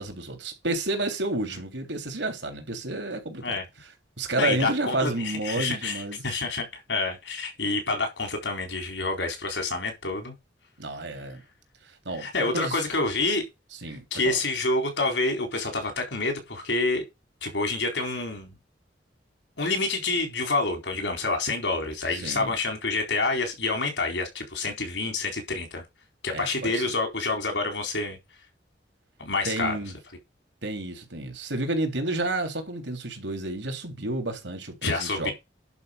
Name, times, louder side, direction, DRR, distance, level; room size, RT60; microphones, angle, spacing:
voice 1, 0.0-3.6 4.2-6.3 10.8-11.4 12.1-12.8 13.7-14.4 22.1-22.5 26.3-26.9 29.4-30.0 30.6-35.3, right 2 dB, 85° right, 3.6 m, -30 dB
voice 2, 4.4-10.3 12.2-13.4 14.1-17.0 17.4-18.5 19.6-25.8 26.2-28.2 29.2-29.8 34.8-35.3, left 3 dB, 80° left, 4.2 m, -28 dB
11.0 x 5.3 x 5.2 m
head